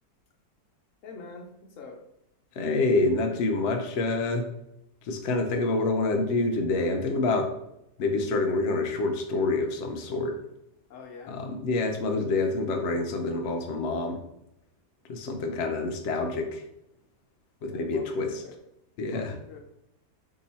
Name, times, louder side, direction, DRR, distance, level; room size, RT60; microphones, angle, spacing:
voice 1, 1.0-2.0 10.9-11.4 17.6-18.5 19.1-19.6, left 4 dB, 60° left, 1 dB, 0.9 m, -45 dB
voice 2, 2.5-4.4 5.0-7.5 8.0-10.4 11.3-14.2 15.1-16.6 17.6-18.4 19.0-19.3, left 3 dB, 80° left, 3 dB, 0.6 m, -27 dB
3.7 x 2.8 x 4.1 m, 0.81 s
omnidirectional pair, 1.9 m